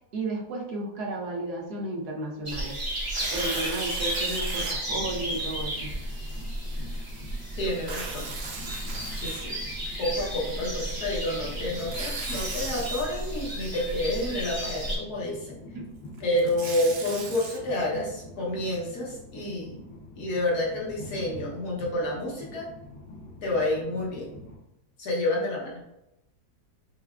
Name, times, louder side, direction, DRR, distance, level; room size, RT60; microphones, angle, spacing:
voice 1, 0.1-2.8 3.3-5.9 15.7-15.8, right 2 dB, 80° right, -2 dB, 1.3 m, -33 dB
sound 1, 2.4-15.0, right 1 dB, 20° right, 0.7 m, -33 dB
Tearing, 3.0-4.7 5.4-5.5 7.7-9.9 11.7-13.0 16.2-17.6, right 4 dB, 60° right, 0.6 m, -37 dB
Train, 4.8-24.6, left 1 dB, 55° left, 1.1 m, -46 dB
voice 2, 7.6-8.3 9.1-9.6 10.0-15.6 16.2-19.8 20.2-22.7 23.4-24.3 25.0-25.7, left 1 dB, 75° left, -4 dB, 1.6 m, -29 dB
5.8 x 2.2 x 2.4 m, 0.88 s
omnidirectional pair, 1.7 m